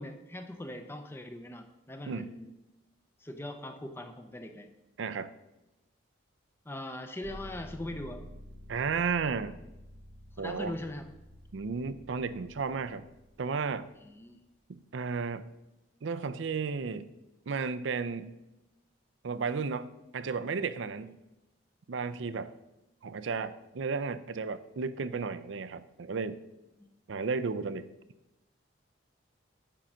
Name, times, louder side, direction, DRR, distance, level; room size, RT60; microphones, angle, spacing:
voice 1, 0.0-2.5 3.2-4.7 6.7-8.2 10.3-11.0 14.0-14.4 26.8-26.9, left 1 dB, 10° left, 7 dB, 0.5 m, -41 dB
voice 2, 5.0-5.3 8.7-9.6 10.4-10.8 11.5-13.1 13.4-13.9 14.7-15.5 16.0-17.1 17.5-18.4 19.2-19.9 20.1-21.2 21.9-22.5 23.0-26.4 27.1-27.9, right 5 dB, 75° right, 13 dB, 0.5 m, -33 dB
sound 1, 7.2-14.1, equal, 35° right, 1.0 m, -50 dB
9.9 x 3.9 x 6.1 m, 0.96 s
head